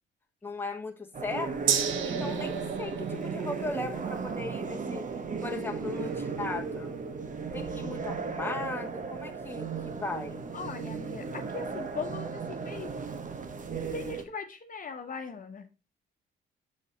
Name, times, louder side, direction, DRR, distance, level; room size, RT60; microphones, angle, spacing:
voice 1, 0.4-5.0 5.4-6.9 7.5-10.4, left 3 dB, 10° left, 1.3 m, -37 dB
sound 1, 1.1-14.2, right 5 dB, 40° right, 1.1 m, -35 dB
Gong, 1.7-9.4 9.8-9.9, right 9 dB, 85° right, 0.9 m, -37 dB
voice 2, 2.1-2.4 10.5-12.9 13.9-15.7, left 5 dB, 45° left, 1.2 m, -39 dB
7.6 x 4.0 x 5.1 m
cardioid pair, 90°, 20 cm